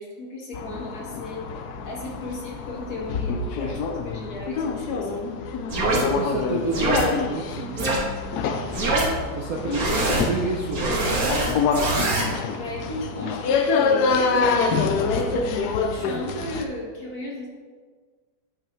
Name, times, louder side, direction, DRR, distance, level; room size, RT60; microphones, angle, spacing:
voice 1, 0.0-1.4 1.8-5.3 9.6-10.0 12.5-17.5, left 1 dB, 50° left, -2 dB, 1.7 m, -35 dB
sound 1, 0.5-16.6, left 5 dB, 70° left, 1.0 m, -26 dB
sound 2, 5.7-6.0 6.7-7.0 7.8-8.0 8.7-9.0 9.7-10.2 10.7-12.3, right 2 dB, 50° right, 1.8 m, -23 dB
voice 2, 5.9-8.0 9.3-9.8 10.2-11.1, right 3 dB, 65° right, -1 dB, 0.9 m, -30 dB
9.8 x 5.3 x 3.1 m, 1.5 s
omnidirectional pair, 2.2 m